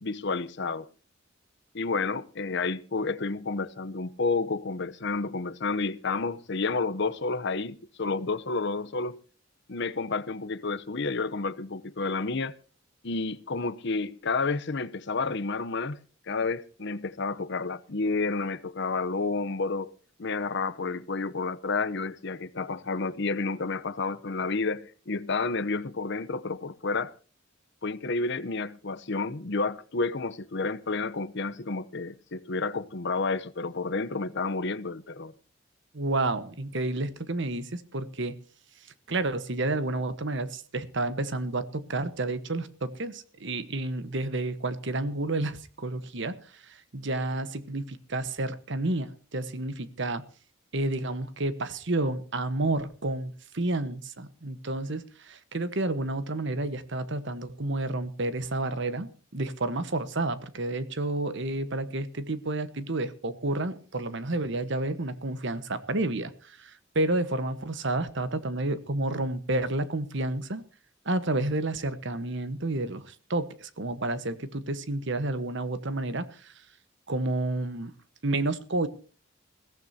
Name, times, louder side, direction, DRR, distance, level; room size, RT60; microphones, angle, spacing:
voice 1, 0.0-0.9 1.7-9.2 9.7-12.6 13.0-16.0 16.3-19.9 20.2-27.1 27.8-35.3, left 3 dB, 60° left, 0.9 m, -30 dB
voice 2, 35.9-38.4 39.1-50.2 50.7-70.6 71.0-76.5 77.1-77.9 78.2-78.9, right 2 dB, 65° right, 1.3 m, -30 dB
21.5 x 16.0 x 2.8 m
head